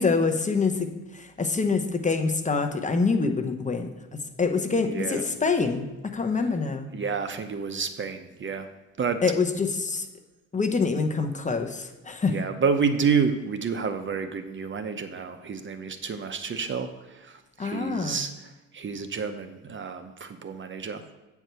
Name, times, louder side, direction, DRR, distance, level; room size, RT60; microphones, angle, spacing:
voice 1, 0.0-3.9 4.4-6.9 9.2-10.1 10.5-12.3 17.6-18.2, left 4 dB, 25° left, 6 dB, 1.0 m, -25 dB
voice 2, 4.9-5.2 6.9-8.7 9.0-9.2 12.3-21.0, right 5 dB, 40° right, 8 dB, 0.8 m, -29 dB
8.9 x 4.7 x 6.8 m, 1.1 s
cardioid pair, 90°, 30 cm